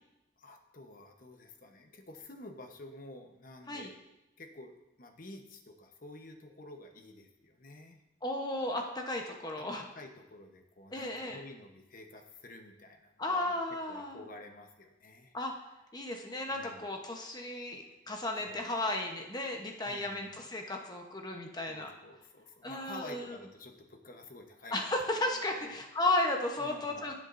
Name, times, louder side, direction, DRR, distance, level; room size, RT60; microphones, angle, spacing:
voice 1, 0.4-3.9 4.4-8.0 9.6-9.7 9.9-13.6 13.9-15.3 16.5-16.8 18.3-18.6 19.9-20.4 21.7-24.9 25.6-25.8 26.6-27.1, left 2 dB, 45° left, 4 dB, 1.0 m, -50 dB
voice 2, 8.2-9.9 10.9-11.4 13.2-14.2 15.3-15.5 15.9-21.9 22.6-23.4 24.7-27.1, left 2 dB, 20° left, 2 dB, 0.9 m, -34 dB
16.0 x 7.2 x 2.6 m, 0.95 s
head